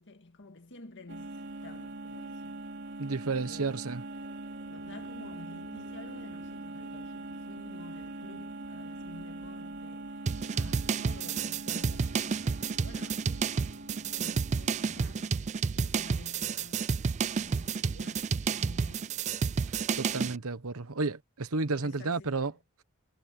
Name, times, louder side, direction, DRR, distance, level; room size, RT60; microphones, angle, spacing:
voice 1, 0.0-2.6 3.4-3.9 4.7-16.9 17.4-19.3 21.7-22.6, left 2 dB, 55° left, 2.0 m, -51 dB
sound 1, 1.1-15.3, right 2 dB, 55° right, 2.9 m, -42 dB
voice 2, 3.0-4.0 20.0-22.5, right 3 dB, 70° right, 1.1 m, -32 dB
sound 2, 3.4-20.9, equal, 10° right, 3.2 m, -61 dB
sound 3, 10.3-20.4, right 5 dB, 30° right, 0.3 m, -31 dB
head